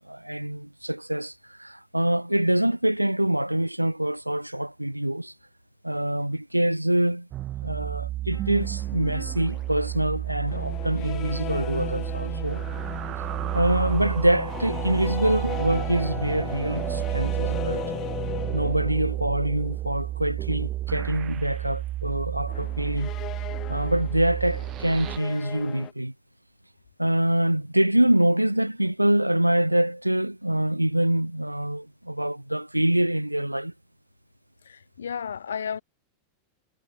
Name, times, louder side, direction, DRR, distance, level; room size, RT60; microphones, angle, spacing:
voice 1, 0.1-5.3 5.8-7.3 7.6-12.6 13.5-17.8 18.5-23.1 23.7-26.1 27.0-33.7, right 1 dB, 85° right, 0.4 m, -25 dB
sound 1, 7.3-25.2, right 15 dB, 35° right, 0.7 m, -31 dB
sound 2, 8.3-19.3 22.5-25.9, left 14 dB, 35° left, 0.7 m, -37 dB
voice 2, 34.6-35.8, left 7 dB, 70° left, 3.2 m, -33 dB
figure-of-eight pair, 90°, 0 cm